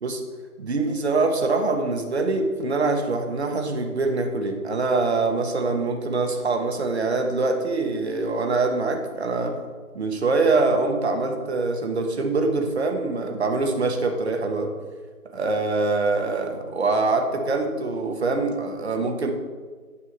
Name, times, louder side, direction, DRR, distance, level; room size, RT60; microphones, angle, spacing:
voice 1, 0.6-9.6 9.9-14.7 15.3-19.3, right 3 dB, 45° right, 4 dB, 1.2 m, -24 dB
9.9 x 6.8 x 4.1 m, 1.5 s
figure-of-eight pair, 160°, 45 cm